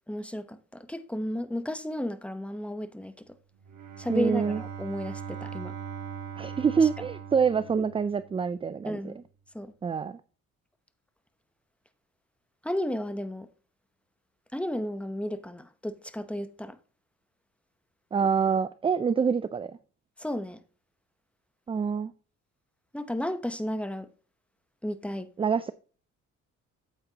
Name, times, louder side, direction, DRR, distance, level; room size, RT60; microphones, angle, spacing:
voice 1, 0.0-3.1 4.0-5.7 8.8-9.2 9.5-9.7 12.6-13.5 14.5-16.8 20.2-20.6 22.9-24.1 24.8-25.3, left 1 dB, 5° left, 0.8 m, -33 dB
Bowed string instrument, 3.5-8.5, right 7 dB, 90° right, 1.5 m, -40 dB
voice 2, 4.1-4.6 6.4-9.1 9.8-10.2 18.1-19.8 21.7-22.1 25.4-25.7, right 6 dB, 20° right, 0.3 m, -26 dB
8.8 x 8.0 x 2.8 m
cardioid pair, 90°, 30 cm